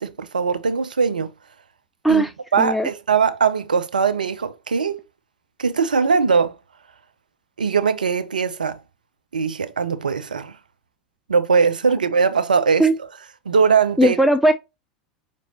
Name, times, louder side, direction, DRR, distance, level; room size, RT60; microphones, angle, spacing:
voice 1, 0.0-1.3 2.1-2.2 2.5-5.0 5.6-6.5 7.6-8.8 9.3-10.5 11.3-12.9 13.5-14.2, right 5 dB, 80° right, 0.4 m, -20 dB
voice 2, 2.6-2.9 12.8-13.0 14.0-14.5, right 1 dB, ahead, 0.4 m, -17 dB
5.1 x 3.0 x 2.7 m
figure-of-eight pair, 85°, 4 cm